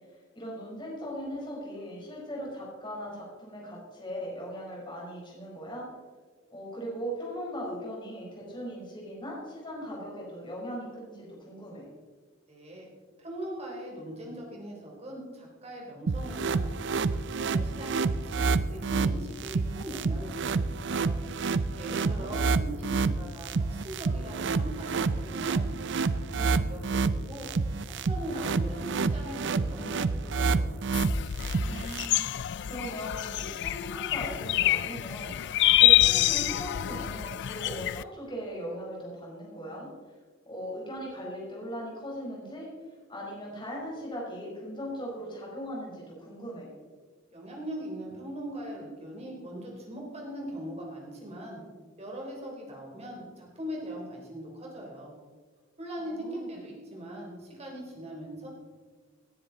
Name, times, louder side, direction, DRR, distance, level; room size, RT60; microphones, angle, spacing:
voice 1, 0.3-5.9 6.5-11.9 21.9-22.6 31.6-39.9 40.5-42.7 43.1-46.7 56.0-56.6, equal, 25° left, -4 dB, 4.4 m, -39 dB
voice 2, 12.5-12.9 13.2-16.7 17.0-21.2 21.8-25.7 26.1-27.7 28.1-30.7 47.3-51.6 52.0-55.1 55.8-58.5, right 1 dB, 35° right, -1 dB, 3.7 m, -40 dB
sound 1, 16.1-32.1, right 4 dB, 60° right, 0.5 m, -29 dB
sound 2, 30.9-38.0, left 14 dB, 60° left, 0.4 m, -26 dB
18.0 x 10.0 x 4.0 m, 1.5 s
head